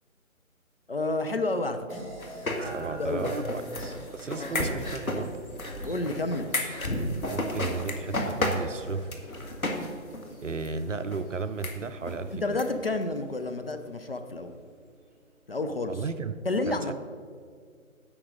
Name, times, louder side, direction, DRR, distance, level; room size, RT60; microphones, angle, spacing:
voice 1, 0.9-2.0 2.9-3.3 4.4-4.6 5.8-6.5 12.3-14.6 15.5-16.0 16.4-16.9, left 2 dB, 45° left, 7 dB, 0.6 m, -30 dB
sound 1, 1.9-6.6, equal, 5° left, 1.5 m, -49 dB
sound 2, 2.2-9.9 10.1-10.2 10.6-10.7 11.1-11.2 11.6-11.7 12.1-12.2 12.6-12.7 12.9-13.0, left 1 dB, 85° left, 1.8 m, -32 dB
sound 3, 2.6-15.6, right 1 dB, 10° right, 1.1 m, -49 dB
voice 2, 2.6-5.3 7.3-9.2 10.4-12.6 15.9-16.4 16.7-16.9, right 4 dB, 65° right, 11 dB, 0.7 m, -34 dB
11.0 x 8.6 x 3.9 m, 2.1 s
figure-of-eight pair, 155°, 41 cm